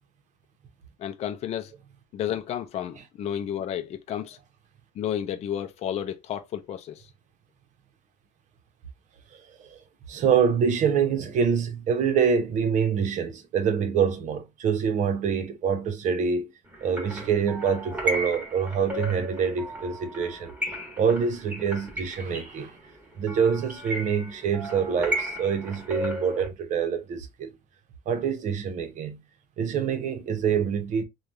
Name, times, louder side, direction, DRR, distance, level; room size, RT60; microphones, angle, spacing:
voice 1, 1.0-1.7 2.1-4.4 4.9-7.1, left 10 dB, 45° left, 0.5 m, -32 dB
voice 2, 9.3-9.8 10.1-16.5 16.8-20.5 21.0-22.8 23.2-27.6 28.1-29.2 29.6-31.0, right 6 dB, 55° right, 0.8 m, -26 dB
sound 1, 16.7-26.5, equal, 10° right, 1.3 m, -34 dB
3.3 x 2.3 x 2.5 m
cardioid pair, 130°, 15 cm